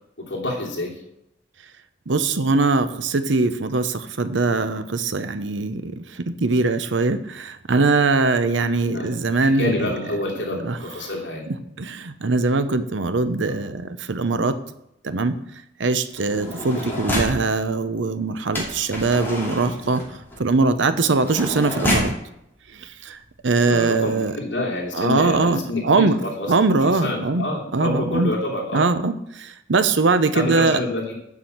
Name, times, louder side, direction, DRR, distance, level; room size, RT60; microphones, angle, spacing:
voice 1, 0.2-0.9 8.9-9.1 9.6-11.5 13.4-13.6 16.7-16.9 23.6-26.5 27.0-28.9 30.3-31.1, left 1 dB, 70° left, -2 dB, 3.0 m, -27 dB
voice 2, 2.1-10.0 10.5-10.8 11.5-14.6 15.0-15.4 15.8-20.0 20.4-22.1 22.7-24.4 24.9-26.2 26.5-27.5 27.7-28.3 28.7-30.8, right 3 dB, 70° right, 11 dB, 0.8 m, -21 dB
sound 1, 16.1-17.5 18.5-22.2 23.0-23.1 23.3-23.6, equal, 10° left, 2.8 m, -28 dB
7.3 x 6.4 x 7.8 m, 0.82 s
head